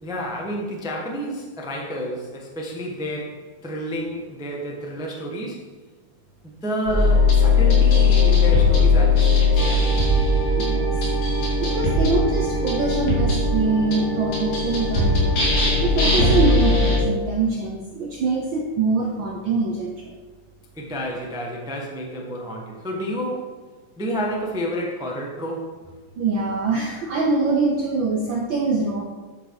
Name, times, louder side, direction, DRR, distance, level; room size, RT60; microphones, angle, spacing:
voice 1, 0.0-5.6 6.6-10.2 20.7-23.5 24.0-25.7, equal, 5° right, -1 dB, 0.5 m, -30 dB
sound 1, 6.9-17.0, left 3 dB, 85° left, 4.5 m, -19 dB
voice 2, 10.6-10.9 11.6-15.4 15.8-20.1 26.2-29.0, right 3 dB, 85° right, 1 dB, 1.0 m, -24 dB
10.5 x 6.8 x 4.9 m, 1.3 s
omnidirectional pair, 3.4 m